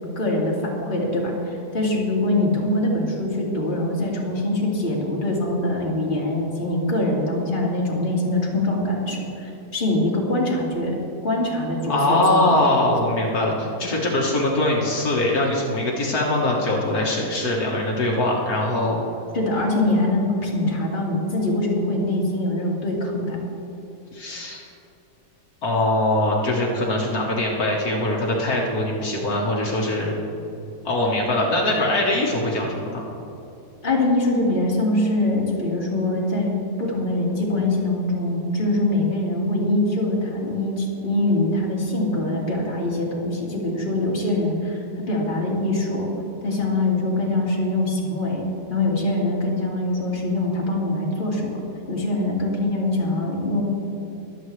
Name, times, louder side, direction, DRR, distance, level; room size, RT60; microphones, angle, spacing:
voice 1, 0.2-11.0 11.2-12.6 19.3-23.4 33.8-46.1 46.4-48.4 48.7-51.6 51.9-53.6, left 1 dB, 35° left, -3 dB, 2.2 m, -23 dB
voice 2, 11.9-19.0 24.1-24.6 25.6-30.1 30.9-33.1, left 1 dB, 70° left, -3 dB, 1.9 m, -22 dB
23.0 x 8.2 x 3.2 m, 2.8 s
omnidirectional pair, 1.6 m